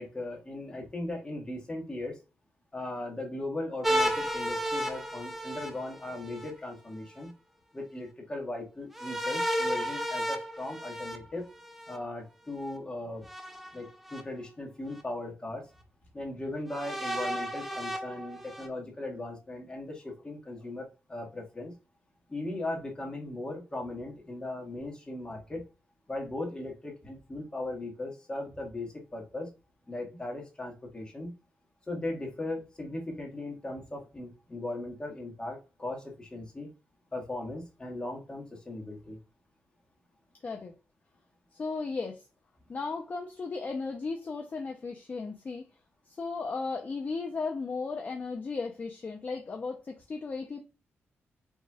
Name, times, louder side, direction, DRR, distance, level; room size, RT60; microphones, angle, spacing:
voice 1, 0.0-2.2 2.7-7.3 7.7-11.5 11.9-13.2 13.7-15.6 16.1-21.7 22.3-25.6 26.1-29.5 29.9-31.3 31.9-36.7 37.1-39.2, left 2 dB, 20° left, 1.7 m, -38 dB
sound 1, 3.8-6.5 8.9-12.0 13.3-14.2 15.0-15.1 16.7-18.7, equal, 5° right, 0.7 m, -33 dB
voice 2, 40.4-40.7 41.5-42.2 42.7-45.7 46.1-50.6, left 4 dB, 35° left, 0.6 m, -35 dB
5.4 x 3.4 x 2.3 m
wide cardioid pair, 120°, 5 cm